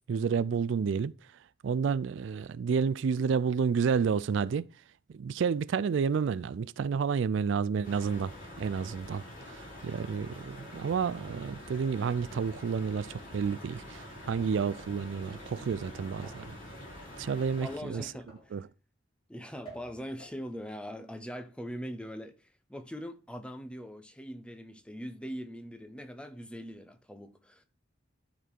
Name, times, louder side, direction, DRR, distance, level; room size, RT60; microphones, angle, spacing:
voice 1, 0.1-1.1 1.6-4.7 5.1-8.3 8.6-16.5 17.2-18.1 18.5-18.6, right 6 dB, 70° right, 0.3 m, -30 dB
sound 1, 7.8-17.8, left 1 dB, 45° left, 4.8 m, -46 dB
sound 2, 16.0-16.6 17.9-18.6 19.6-20.4, right 2 dB, 30° left, 5.1 m, -51 dB
voice 2, 17.6-18.6 19.3-27.6, equal, 5° left, 0.8 m, -42 dB
12.0 x 4.3 x 4.6 m
head